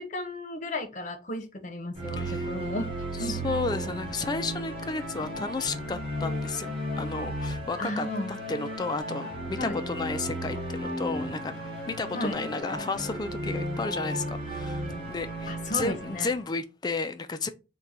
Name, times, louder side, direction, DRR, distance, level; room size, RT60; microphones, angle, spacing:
voice 1, 0.0-2.9 3.2-3.5 5.3-5.4 7.8-8.4 9.6-9.8 12.1-12.4 15.5-16.3, left 1 dB, 45° left, 0.8 m, -34 dB
sound 1, 1.9-16.5, equal, 35° right, 1.5 m, -34 dB
voice 2, 2.2-2.5 3.2-8.1 8.5-11.5 11.9-17.5, left 3 dB, 25° left, 0.3 m, -33 dB
3.6 x 2.2 x 4.1 m
head